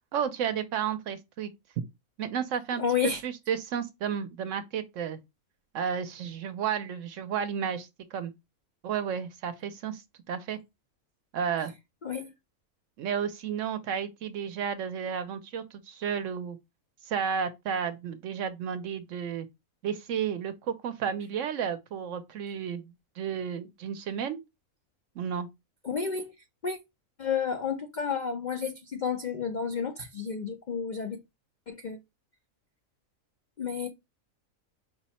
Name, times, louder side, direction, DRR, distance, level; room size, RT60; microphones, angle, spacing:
voice 1, 0.1-1.5 2.2-5.2 5.7-8.3 8.8-10.0 10.3-10.6 11.3-11.7 13.0-16.6 17.1-19.5 19.8-24.4 25.2-25.5, right 7 dB, 70° right, 0.9 m, -32 dB
voice 2, 2.8-3.2 12.0-12.3 25.8-26.3 26.6-26.8 27.2-31.2 31.7-32.0 33.6-33.9, left 6 dB, 75° left, 0.4 m, -31 dB
5.2 x 2.0 x 4.1 m
omnidirectional pair, 1.5 m